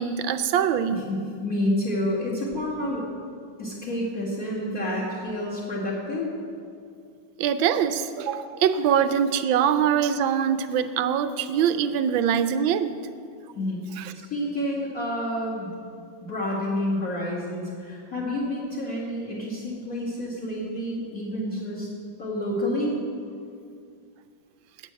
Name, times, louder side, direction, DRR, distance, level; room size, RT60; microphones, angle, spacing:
voice 1, 0.0-1.0 7.4-12.9 14.0-14.1, right 8 dB, 85° right, 10 dB, 1.3 m, -23 dB
voice 2, 0.9-3.0 3.6-6.3 13.6-13.8 14.1-15.8 16.2-21.9 22.2-22.9, left 1 dB, 45° left, -6 dB, 2.4 m, -29 dB
9.1 x 8.4 x 7.5 m, 2.3 s
omnidirectional pair, 2.1 m